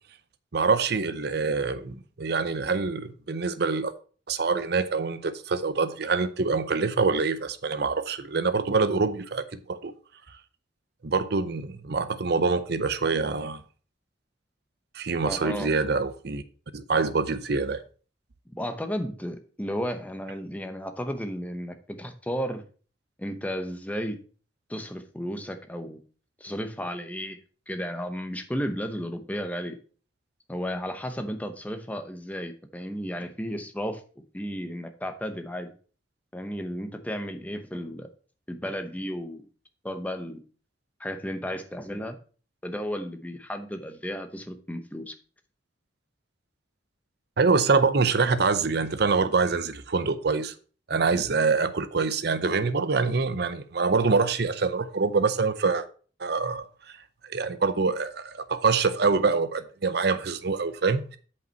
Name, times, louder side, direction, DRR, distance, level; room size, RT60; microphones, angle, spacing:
voice 1, 0.5-3.9 4.3-9.9 11.0-13.6 14.9-16.4 16.7-17.8 47.4-50.5 50.9-55.9 56.2-56.7 57.2-61.2, right 4 dB, 60° right, 0.7 m, -25 dB
voice 2, 15.2-15.7 18.6-22.6 23.2-24.2 24.7-26.0 26.4-27.4 27.7-29.8 30.5-34.0 34.3-35.7 36.3-38.1 38.5-39.4 39.8-40.4 41.0-42.2 42.6-45.1, equal, 10° left, 0.8 m, -33 dB
8.1 x 5.3 x 4.5 m
head